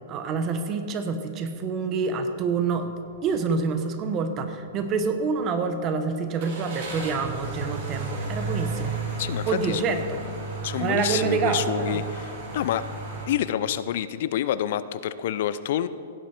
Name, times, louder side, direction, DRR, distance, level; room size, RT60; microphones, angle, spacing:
voice 1, 0.1-2.9 3.2-9.0 9.5-10.2 10.8-12.0, right 5 dB, 25° right, 8 dB, 0.9 m, -27 dB
sound 1, 3.1-3.4 3.8-3.9 6.4-13.2, right 3 dB, 50° right, 2.9 m, -33 dB
voice 2, 9.2-10.0 10.6-12.8 13.3-15.9, left 11 dB, 55° left, 14 dB, 0.4 m, -28 dB
16.5 x 7.4 x 4.4 m, 2.3 s
hypercardioid pair, 150°, 0 cm